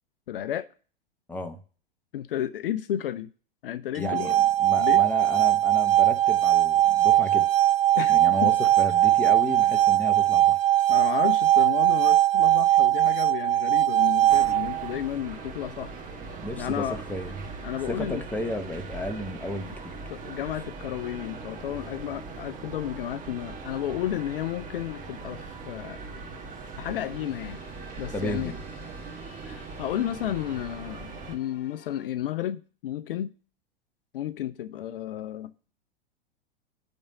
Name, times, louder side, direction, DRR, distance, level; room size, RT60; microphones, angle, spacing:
voice 1, 0.3-0.7 2.1-3.3 3.6-4.4 4.8-5.0 8.0-8.5 10.9-15.9 16.6-17.0 17.6-18.2 19.7-19.8 20.1-26.0 26.8-27.6 28.0-28.5 29.4-33.3 34.1-35.5, left 11 dB, 65° left, 0.5 m, -32 dB
voice 2, 4.0-4.3 4.6-7.4 8.1-10.6 16.4-17.3 17.9-20.0 28.1-28.6, left 1 dB, 5° left, 1.1 m, -33 dB
sound 1, 4.0-14.9, right 13 dB, 70° right, 0.6 m, -20 dB
sound 2, 14.3-31.4, right 5 dB, 25° right, 1.3 m, -41 dB
sound 3, 14.7-32.1, left 7 dB, 45° left, 2.3 m, -52 dB
8.5 x 3.5 x 6.6 m
figure-of-eight pair, 100°, 30 cm